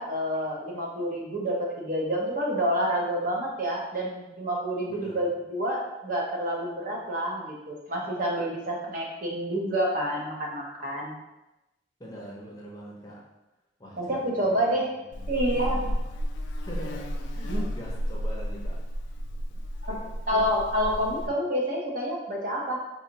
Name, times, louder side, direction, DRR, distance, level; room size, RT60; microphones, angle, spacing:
voice 1, 0.0-11.1 14.0-14.9 15.3-15.8 17.5-17.7 19.8-20.0 20.3-22.8, equal, 45° right, -2 dB, 0.6 m, -28 dB
voice 2, 4.9-5.2 12.0-13.2 13.8-14.8 15.2-15.3 15.7-16.0 16.6-19.2 19.5-20.5 21.1-21.3, equal, 20° left, -3 dB, 0.6 m, -44 dB
Buzz, 15.1-21.3, equal, 70° left, 0.3 m, -32 dB
4.0 x 2.5 x 2.8 m, 0.98 s
head